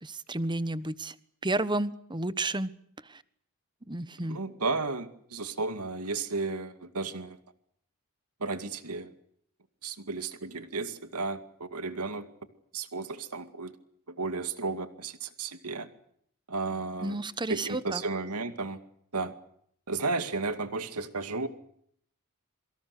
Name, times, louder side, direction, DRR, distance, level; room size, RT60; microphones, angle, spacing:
voice 1, 0.0-1.1 1.4-2.7 3.1-3.2 3.9-4.4 17.0-18.0, right 2 dB, 20° right, 15 dB, 1.2 m, -31 dB
voice 2, 4.3-7.4 8.4-9.1 9.8-12.3 12.7-13.7 14.1-15.9 16.5-17.2 17.5-18.8 19.1-19.3 19.9-21.5, right 3 dB, 90° right, 10 dB, 2.4 m, -33 dB
27.0 x 25.0 x 6.7 m, 0.66 s
head